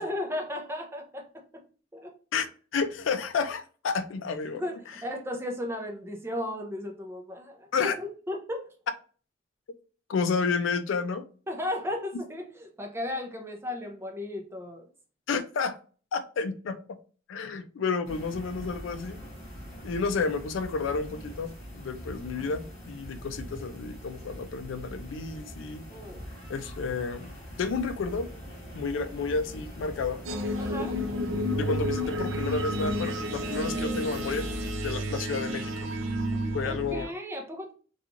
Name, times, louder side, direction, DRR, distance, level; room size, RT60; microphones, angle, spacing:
voice 1, 0.0-1.6 1.9-2.1 4.5-8.8 11.5-14.9 25.9-26.3 30.6-31.0 36.6-37.7, left 1 dB, 15° right, 0.4 m, -35 dB
voice 2, 2.7-4.6 7.7-7.9 10.1-11.2 15.3-15.8 16.1-16.8 17.3-19.2 19.8-25.9 26.5-27.3 27.6-28.3 28.7-30.2 31.6-34.5 34.8-35.7 36.5-37.1, left 4 dB, 80° left, 0.4 m, -31 dB
sound 1, 18.0-34.7, equal, 30° left, 0.9 m, -42 dB
sound 2, 30.2-37.0, equal, 80° right, 0.4 m, -31 dB
2.9 x 2.3 x 2.5 m
head